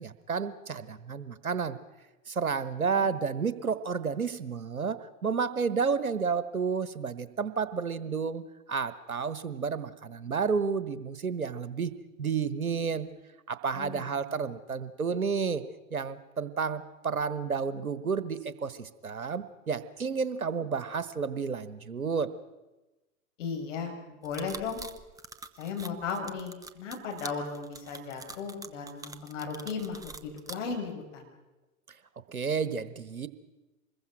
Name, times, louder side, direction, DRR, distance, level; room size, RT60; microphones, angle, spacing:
voice 1, 0.0-1.8 2.3-13.1 13.5-15.6 15.9-22.3 32.3-33.3, right 5 dB, 80° right, 14 dB, 1.3 m, -31 dB
voice 2, 2.9-3.6 13.7-14.1 23.4-24.8 25.6-31.3, left 5 dB, 55° left, 2 dB, 5.6 m, -36 dB
sound 1, 24.2-30.5, right 3 dB, 10° right, 0.9 m, -44 dB
25.5 x 21.5 x 6.1 m, 1.1 s
figure-of-eight pair, 95°, 42 cm